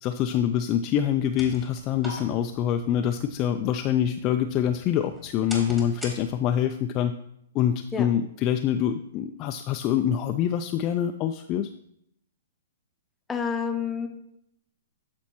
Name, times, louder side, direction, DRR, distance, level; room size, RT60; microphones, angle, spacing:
voice 1, 0.0-7.1 7.5-11.7, left 10 dB, 30° left, 6 dB, 0.3 m, -25 dB
sound 1, 1.2-6.7, equal, 5° right, 1.5 m, -44 dB
voice 2, 13.3-14.1, left 6 dB, 10° left, 5 dB, 0.7 m, -28 dB
12.0 x 4.2 x 3.0 m, 0.76 s
hypercardioid pair, 135°, 0 cm